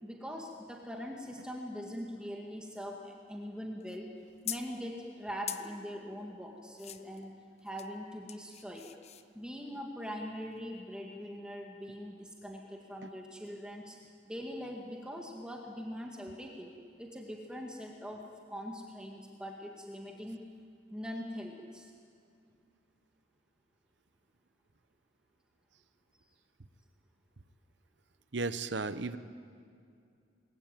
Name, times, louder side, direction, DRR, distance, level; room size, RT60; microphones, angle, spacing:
voice 1, 0.0-4.1 4.4-8.9 9.3-14.0 14.3-16.7 17.0-20.4 20.9-21.9, equal, 5° right, 1 dB, 2.0 m, -42 dB
sound 1, 3.8-4.8 5.5-5.7 6.8-7.2 7.6-7.9 8.3-9.3 10.5-10.6, left 11 dB, 35° left, 0.9 m, -43 dB
voice 2, 28.3-29.2, right 3 dB, 70° right, 12 dB, 1.0 m, -34 dB
28.0 x 21.5 x 9.3 m, 2.4 s
head